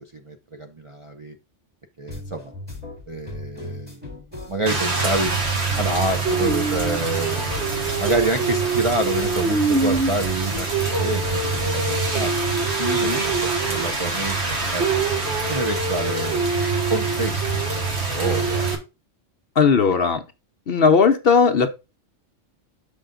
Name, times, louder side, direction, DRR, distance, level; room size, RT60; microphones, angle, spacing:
voice 1, 0.0-1.4 2.0-2.5 3.1-4.0 4.5-5.4 5.7-7.5 8.0-12.4 13.0-15.0 15.5-16.5 16.9-18.7, right 2 dB, 35° right, 0.5 m, -28 dB
sound 1, 2.1-11.7, left 2 dB, 10° right, 2.0 m, -38 dB
Rain, 4.7-18.8, right 4 dB, 60° right, 1.7 m, -23 dB
voice 2, 12.8-13.2 19.5-20.2 20.7-21.7, left 5 dB, 55° left, 0.9 m, -18 dB
6.8 x 5.5 x 3.8 m
omnidirectional pair, 1.3 m